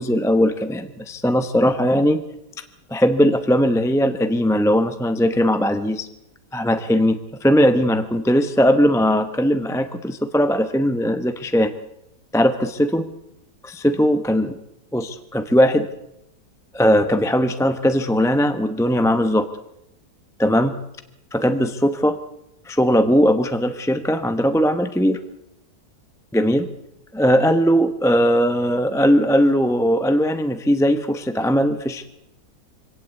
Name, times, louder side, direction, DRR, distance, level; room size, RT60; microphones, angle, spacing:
voice 1, 0.0-2.2 2.9-6.1 6.5-11.7 12.3-13.1 13.6-14.6 14.9-15.9 16.7-19.5 20.4-20.7 21.3-22.2 22.7-25.2 26.3-26.7 27.1-32.1, equal, 5° left, 9 dB, 0.7 m, -19 dB
24.5 x 17.5 x 8.3 m, 0.83 s
omnidirectional pair, 1.7 m